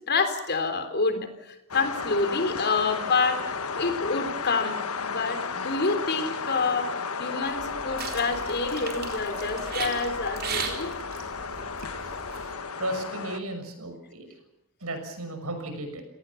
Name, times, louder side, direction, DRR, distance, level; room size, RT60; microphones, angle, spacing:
voice 1, 0.1-3.4 3.8-10.9, left 4 dB, 50° left, 9 dB, 3.7 m, -28 dB
Wind in pine trees, 1.7-13.4, left 5 dB, 75° left, 1.6 m, -33 dB
Drinking Water with Hand, 7.5-12.5, right 5 dB, 45° right, 4.2 m, -37 dB
voice 2, 12.8-14.3 14.8-16.0, right 1 dB, 70° right, 7 dB, 6.3 m, -34 dB
29.0 x 18.5 x 7.2 m, 0.84 s
head